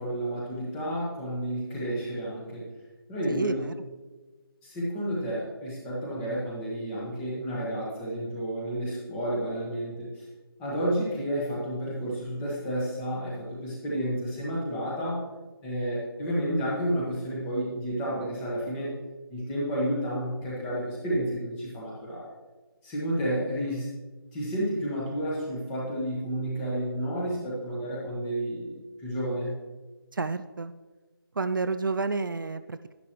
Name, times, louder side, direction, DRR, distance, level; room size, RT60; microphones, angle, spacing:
voice 1, 0.0-2.6 3.1-3.6 4.6-10.3 10.6-15.2 15.6-18.9 19.3-22.3 22.8-23.9 24.3-29.6, equal, 5° left, -5 dB, 1.2 m, -31 dB
voice 2, 3.3-3.7 30.1-30.7 31.4-32.9, right 4 dB, 60° right, 11 dB, 0.4 m, -30 dB
11.0 x 10.5 x 3.0 m, 1.3 s
figure-of-eight pair, 170°, 13 cm